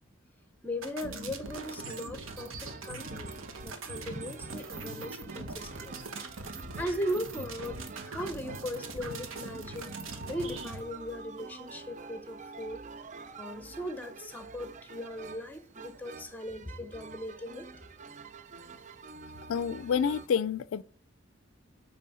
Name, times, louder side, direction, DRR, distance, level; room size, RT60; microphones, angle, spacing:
voice 1, 0.6-3.3 3.6-5.9 6.8-10.0 10.3-12.8 13.4-17.7, equal, 10° left, 0.7 m, -38 dB
sound 1, 0.8-10.8, right 3 dB, 75° right, 1.2 m, -42 dB
sound 2, 1.4-20.3, right 4 dB, 35° right, 0.4 m, -48 dB
voice 2, 19.5-20.8, left 7 dB, 70° left, 0.3 m, -28 dB
9.1 x 3.4 x 5.5 m
head